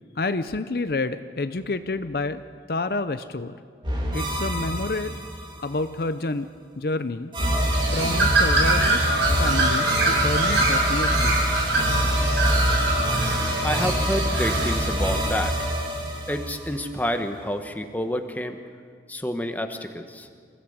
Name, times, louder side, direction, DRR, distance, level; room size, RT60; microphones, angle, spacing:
voice 1, 0.2-2.4 2.7-3.5 4.1-5.2 5.6-6.5 6.8-7.3 7.9-9.1 9.4-11.3, left 3 dB, 55° left, 11 dB, 0.6 m, -28 dB
sound 1, 3.8-5.7 7.3-17.1, equal, 25° right, 2.6 m, -25 dB
Bird, 7.7-15.2, right 2 dB, 85° right, 6.0 m, -24 dB
voice 2, 13.6-15.6 16.3-18.6 19.1-20.3, left 1 dB, 10° left, 6 dB, 1.2 m, -28 dB
26.5 x 16.0 x 7.9 m, 2.1 s
head